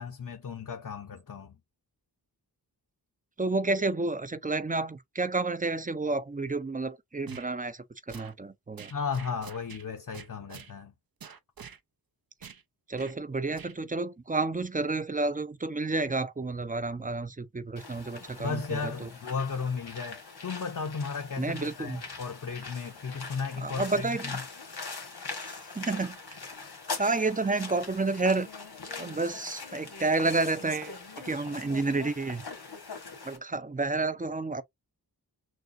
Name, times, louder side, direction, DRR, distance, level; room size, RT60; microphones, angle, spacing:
voice 1, 0.0-1.6 8.9-10.9 18.4-24.4 26.6-26.9, left 5 dB, 55° left, 0.7 m, -35 dB
voice 2, 3.4-8.9 12.9-18.9 21.4-22.0 23.6-24.4 25.7-26.2 27.0-28.5 29.0-32.4 33.2-34.6, right 3 dB, 20° right, 0.5 m, -30 dB
sound 1, 7.3-7.5 8.1-8.3 8.8-9.8 10.1-10.7 11.2-11.8 12.4-12.6 13.0-13.1 13.5-13.7, right 7 dB, 65° right, 0.7 m, -46 dB
sound 2, 17.8-33.4, left 4 dB, 85° left, 1.5 m, -42 dB
6.1 x 2.3 x 2.6 m
wide cardioid pair, 60°, 38 cm